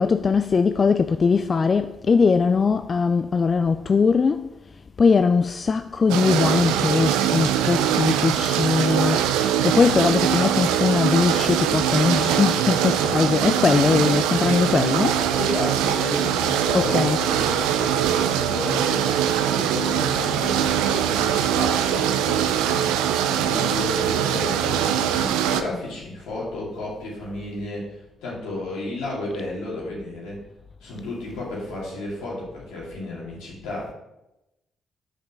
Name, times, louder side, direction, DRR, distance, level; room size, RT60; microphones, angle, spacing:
voice 1, 0.0-4.5 5.0-15.3 16.7-17.2 18.3-18.4 20.1-20.2 21.3-21.4, left 5 dB, 45° left, 0.3 m, -21 dB
sound 1, 6.1-25.6, right 9 dB, 85° right, 0.4 m, -22 dB
voice 2, 15.4-19.2 19.5-30.4 30.8-33.9, left 2 dB, 85° left, 2.5 m, -32 dB
5.1 x 5.1 x 5.9 m
hypercardioid pair, 50°, 0 cm